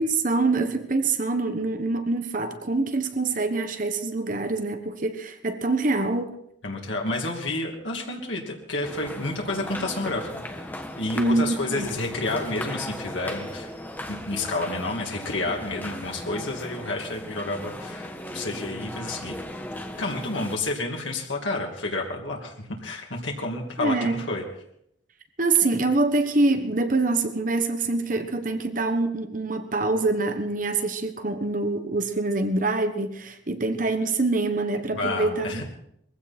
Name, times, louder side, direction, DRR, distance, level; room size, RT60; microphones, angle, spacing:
voice 1, 0.0-6.3 11.2-11.9 23.8-24.2 25.4-35.6, right 3 dB, 45° right, 8 dB, 1.3 m, -25 dB
voice 2, 6.6-10.7 11.0-13.7 14.1-19.3 20.0-22.5 22.8-24.4 34.9-35.6, left 2 dB, 85° left, 0 dB, 2.7 m, -30 dB
sound 1, 8.8-20.6, left 1 dB, 10° left, 1.3 m, -37 dB
21.0 x 15.5 x 4.3 m, 0.73 s
head